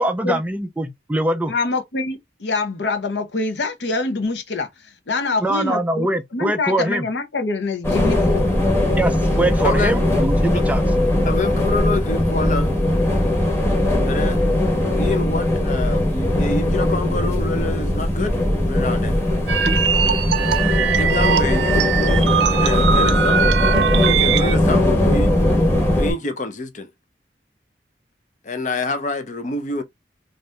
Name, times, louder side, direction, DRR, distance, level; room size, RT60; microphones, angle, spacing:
voice 1, 0.0-1.5 5.4-7.1 9.0-10.8, right 1 dB, 10° right, 0.4 m, -22 dB
voice 2, 1.5-6.1 6.3-8.5, left 3 dB, 85° left, 0.8 m, -25 dB
sound 1, 7.8-26.1, left 1 dB, 15° left, 1.0 m, -19 dB
voice 3, 11.2-12.7 14.0-14.4 15.0-18.4 18.6-19.2 21.0-23.6 24.0-25.3 26.0-26.9 28.4-29.8, left 2 dB, 45° left, 0.6 m, -27 dB
sound 2, 19.5-24.6, right 8 dB, 85° right, 0.4 m, -21 dB
2.6 x 2.5 x 3.3 m
head